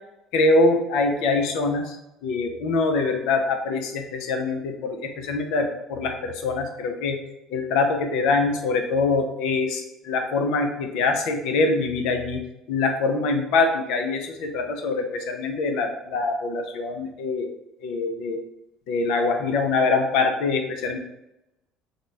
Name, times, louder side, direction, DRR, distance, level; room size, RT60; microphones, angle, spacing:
voice 1, 0.3-2.0 2.2-7.2 7.5-12.4 12.7-17.5 17.8-18.4 18.9-21.0, left 3 dB, 70° left, 5 dB, 0.5 m, -24 dB
3.7 x 2.1 x 3.2 m, 0.89 s
hypercardioid pair, 70°, 0 cm